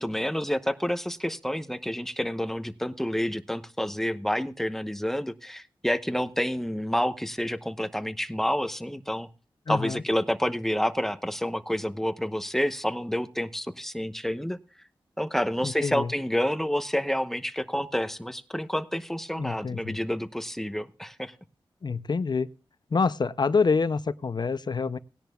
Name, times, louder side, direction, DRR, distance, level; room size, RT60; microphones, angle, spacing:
voice 1, 0.0-9.3 9.7-14.6 15.2-21.3, equal, 5° left, 0.9 m, -29 dB
voice 2, 9.7-10.0 15.6-16.1 19.4-20.0 21.8-22.5 22.9-25.0, left 4 dB, 55° left, 0.5 m, -26 dB
19.0 x 10.5 x 2.3 m
wide cardioid pair, 70°, 9 cm